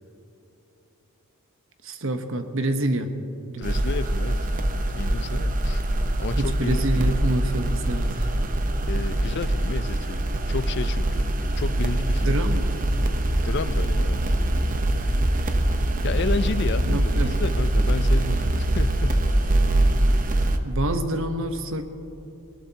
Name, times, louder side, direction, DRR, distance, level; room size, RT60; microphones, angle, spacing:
voice 1, 1.8-3.1 3.5-3.8 6.4-8.3 12.2-12.8 16.8-17.4 20.6-21.8, right 1 dB, 60° right, 7 dB, 1.0 m, -27 dB
voice 2, 3.6-4.4 4.9-5.8 6.2-6.8 8.9-10.2 10.5-11.3 11.6-12.4 13.4-14.2 16.0-19.2, left 4 dB, 50° left, 14 dB, 0.4 m, -31 dB
sound 1, 3.6-20.6, right 1 dB, 35° right, 0.8 m, -23 dB
19.5 x 19.0 x 2.9 m, 2.9 s
head